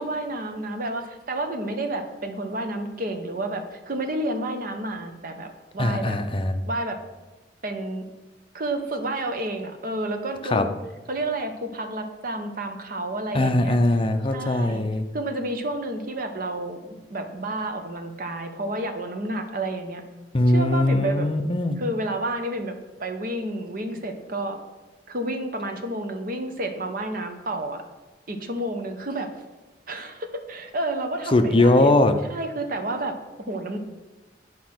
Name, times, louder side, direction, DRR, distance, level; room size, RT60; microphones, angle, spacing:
voice 1, 0.0-6.2 6.6-7.0 7.6-8.0 8.5-10.7 11.1-13.8 14.3-14.8 15.1-20.0 20.5-21.3 21.8-24.6 25.1-27.8 28.3-29.3 29.9-31.9 32.3-33.2 33.5-33.8, right 1 dB, 50° right, 6 dB, 1.0 m, -30 dB
voice 2, 5.8-6.6 10.5-10.7 13.3-15.1 20.3-21.8 31.3-32.2, left 1 dB, 30° left, 7 dB, 0.6 m, -20 dB
10.5 x 5.1 x 6.0 m, 1.1 s
head